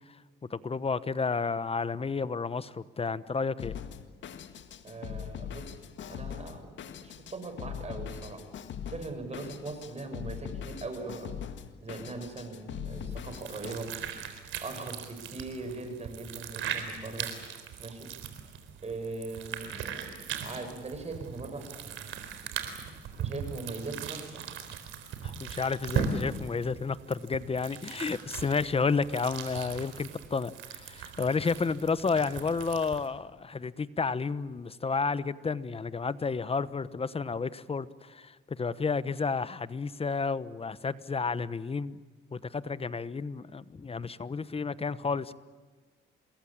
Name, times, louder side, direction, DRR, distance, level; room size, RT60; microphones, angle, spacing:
voice 1, 0.5-3.7 25.2-42.0 42.3-45.3, left 4 dB, 30° left, 16 dB, 1.0 m, -31 dB
Drum kit, 3.6-13.8, left 8 dB, 70° left, 1.9 m, -41 dB
voice 2, 4.8-5.8 6.1-8.4 8.9-11.4 11.8-13.9 14.6-17.3 17.8-18.1 18.8-22.5 23.2-24.4, right 3 dB, 35° right, 6 dB, 6.4 m, -40 dB
sound 1, 13.1-33.1, right 7 dB, 85° right, 3.9 m, -39 dB
27.5 x 21.5 x 8.7 m, 1.4 s
cardioid pair, 90°, 20 cm